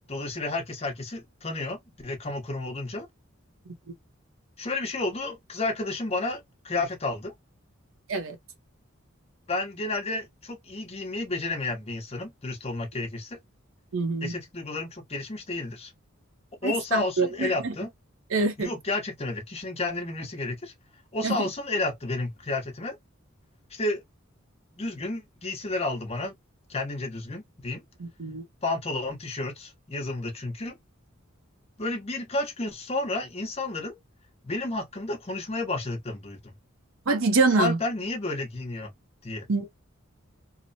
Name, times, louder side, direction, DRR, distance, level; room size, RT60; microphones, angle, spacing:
voice 1, 0.1-3.1 4.6-7.3 9.5-13.4 14.2-15.9 16.6-17.9 18.6-20.7 21.1-23.0 23.7-24.0 24.8-26.3 26.7-27.8 28.6-30.8 31.8-34.0 34.4-36.5 37.6-38.9 39.2-39.5, left 2 dB, 30° left, 0.9 m, -31 dB
voice 2, 13.9-14.3 16.6-17.7 18.3-18.7 21.2-21.5 28.0-28.4 37.1-37.8 39.5-39.7, right 3 dB, 75° right, 0.7 m, -25 dB
2.9 x 2.0 x 2.7 m
head